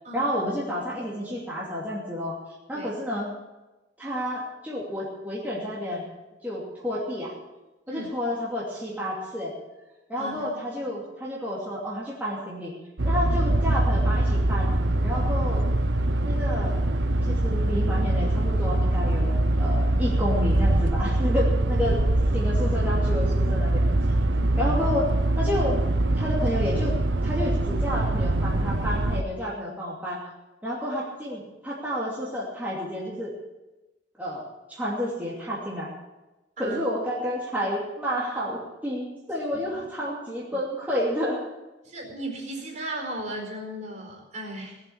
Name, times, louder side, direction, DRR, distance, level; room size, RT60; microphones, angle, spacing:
voice 1, 0.1-2.4 2.7-3.3 4.0-6.1 6.4-7.3 7.9-9.5 10.1-12.7 13.0-14.7 15.0-15.6 16.2-16.8 17.2-22.0 22.3-23.8 24.6-25.1 25.4-25.8 26.1-26.9 27.2-30.2 30.6-33.3 34.2-35.9 36.6-41.4, equal, 10° right, -6 dB, 2.7 m, -30 dB
voice 2, 10.2-10.5 24.3-24.5 36.6-36.8 39.5-39.9 41.8-44.8, right 1 dB, 40° right, 0 dB, 4.5 m, -36 dB
sound 1, 13.0-29.2, right 1 dB, 85° right, 0.9 m, -23 dB
18.5 x 7.6 x 8.6 m, 1.1 s
head